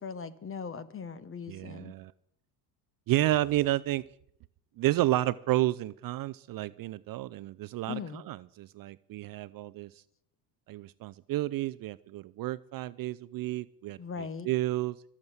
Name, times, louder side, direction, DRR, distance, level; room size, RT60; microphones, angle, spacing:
voice 1, 0.0-1.9 7.9-8.2 14.0-14.5, left 6 dB, 25° left, 15 dB, 1.3 m, -39 dB
voice 2, 1.5-2.1 3.1-4.0 4.8-9.9 10.7-15.1, right 16 dB, 45° right, 17 dB, 0.5 m, -31 dB
22.0 x 7.3 x 8.0 m, 0.69 s
supercardioid pair, 105°, 50 cm